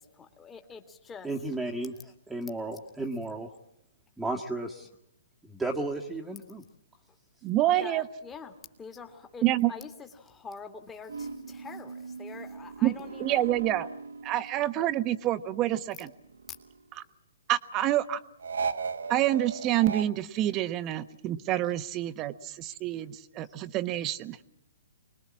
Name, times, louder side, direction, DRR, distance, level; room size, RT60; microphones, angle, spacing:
voice 1, 0.2-1.3 7.8-13.5, left 5 dB, 15° left, 6 dB, 2.2 m, -45 dB
voice 2, 1.2-3.6 4.2-4.9 5.5-6.6, right 2 dB, 5° right, -1 dB, 1.7 m, -34 dB
voice 3, 7.4-8.1 9.4-9.7 12.8-12.9 13.2-13.9 14.2-16.1 16.9-17.0 17.5-18.2 19.1-24.4, right 13 dB, 30° right, 12 dB, 1.1 m, -27 dB
sound 1, 11.1-15.0 15.3-16.9 18.4-20.0, right 5 dB, 75° right, 1.6 m, -38 dB
25.5 x 21.0 x 7.5 m, 0.82 s
hypercardioid pair, 130°, 0 cm